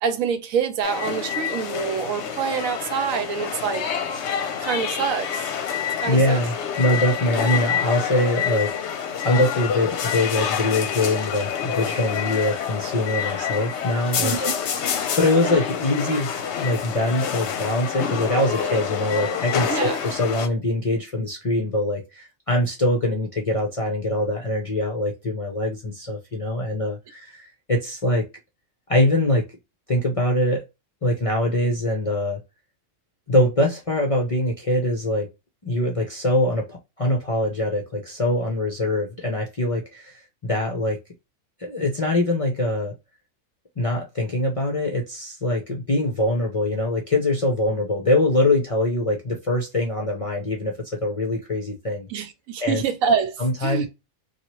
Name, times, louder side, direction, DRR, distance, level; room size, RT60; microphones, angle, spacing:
voice 1, 0.0-3.8 4.6-5.4 6.0-6.4 14.2-14.5 19.7-20.0 52.1-53.9, right 6 dB, 80° right, 1.1 m, -26 dB
sound 1, 0.8-20.5, left 8 dB, 65° left, 0.8 m, -27 dB
voice 2, 6.1-16.3 16.6-28.2 28.9-29.5 29.9-30.6 31.0-32.4 33.3-35.3 35.6-41.0 41.6-42.9 43.8-52.3 52.6-52.8 53.4-53.9, left 1 dB, 40° left, 0.5 m, -23 dB
2.8 x 2.4 x 2.9 m
omnidirectional pair, 1.4 m